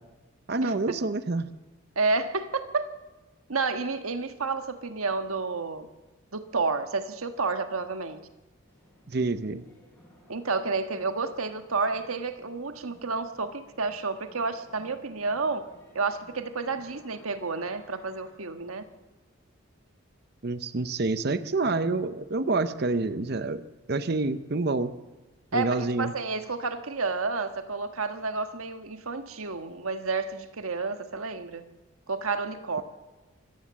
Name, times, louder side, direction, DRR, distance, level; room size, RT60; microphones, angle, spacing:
voice 1, 0.5-1.5 9.1-9.6 20.4-23.6 23.9-24.9 25.5-26.1, right 3 dB, 50° right, 12 dB, 0.7 m, -27 dB
voice 2, 1.9-2.9 3.5-5.9 6.3-8.2 10.3-15.7 15.9-18.8 21.6-21.7 25.5-31.6 32.1-32.8, right 4 dB, 85° right, 8 dB, 1.5 m, -30 dB
sound 1, 8.7-18.3, equal, 10° left, 6.6 m, -58 dB
25.0 x 15.0 x 7.4 m, 1.2 s
head